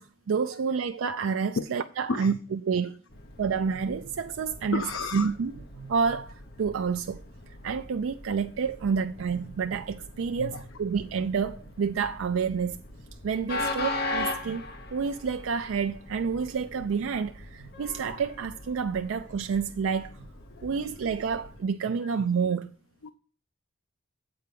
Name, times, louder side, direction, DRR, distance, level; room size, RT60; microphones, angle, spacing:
voice 1, 0.0-3.0 3.4-4.8 5.1-7.2 7.6-12.8 13.2-20.3 20.6-22.7, right 6 dB, 75° right, 0.4 m, -29 dB
Train, 3.1-21.6, left 2 dB, 50° left, 1.1 m, -40 dB
voice 2, 4.7-5.3 10.4-10.6 20.5-20.9 21.9-22.0 23.0-23.1, left 4 dB, 80° left, 0.6 m, -33 dB
7.8 x 4.6 x 6.7 m
head